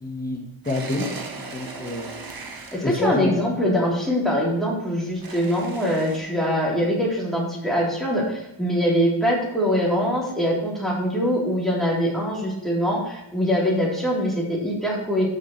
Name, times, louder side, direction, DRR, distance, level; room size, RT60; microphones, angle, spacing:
voice 1, 0.0-2.1 2.8-3.5, left 2 dB, 15° left, 0 dB, 1.3 m, -28 dB
sound 1, 0.6-3.0 5.2-6.2, right 3 dB, 45° right, 1.3 m, -37 dB
voice 2, 2.7-15.3, equal, ahead, -5 dB, 3.7 m, -23 dB
14.0 x 6.9 x 3.2 m, 0.83 s
wide cardioid pair, 130°, 50 cm